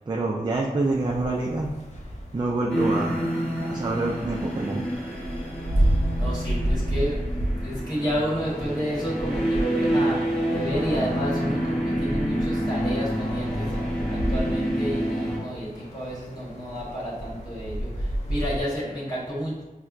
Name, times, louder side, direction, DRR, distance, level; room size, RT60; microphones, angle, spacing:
voice 1, 0.1-1.7 2.3-3.2 3.7-4.9, right 2 dB, 30° right, -2 dB, 0.4 m, -26 dB
sound 1, 0.8-18.6, right 1 dB, 45° left, 0.7 m, -31 dB
sound 2, 2.7-15.4, equal, 5° left, 0.9 m, -28 dB
voice 2, 5.8-7.2 7.6-10.2 10.5-19.6, equal, 25° left, -8 dB, 1.1 m, -31 dB
4.2 x 2.1 x 2.4 m, 1.2 s
wide cardioid pair, 60°, 15 cm